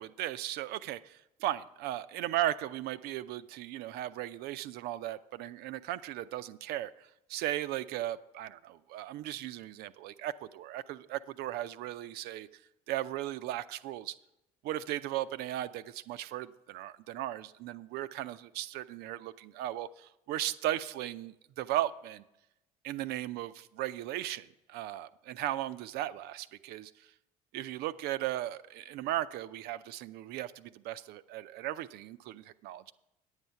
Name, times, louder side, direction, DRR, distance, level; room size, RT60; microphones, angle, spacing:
voice 1, 0.0-12.5 12.9-14.1 14.6-22.2 22.8-27.1 27.5-32.9, right 13 dB, 60° right, 14 dB, 0.5 m, -37 dB
9.7 x 8.1 x 5.6 m, 0.89 s
hypercardioid pair, 55°, 19 cm